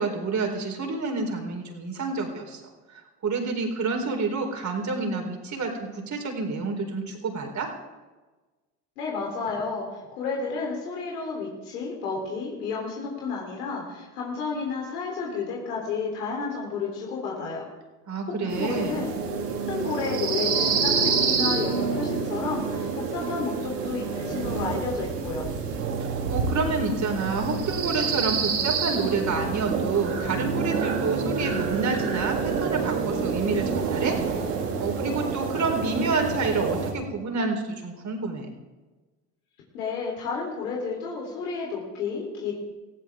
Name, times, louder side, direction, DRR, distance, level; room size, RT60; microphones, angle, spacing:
voice 1, 0.0-2.6 2.9-7.7 18.1-19.1 26.0-34.2 34.8-38.5, right 4 dB, 40° right, 3 dB, 4.1 m, -28 dB
voice 2, 9.0-9.9 10.2-17.6 18.3-19.1 19.7-25.4 39.7-42.5, left 4 dB, 85° left, -2 dB, 3.8 m, -31 dB
sound 1, 18.5-36.9, right 5 dB, 90° right, 2.6 m, -28 dB
19.0 x 15.5 x 3.7 m, 1.2 s
hypercardioid pair, 75°, 46 cm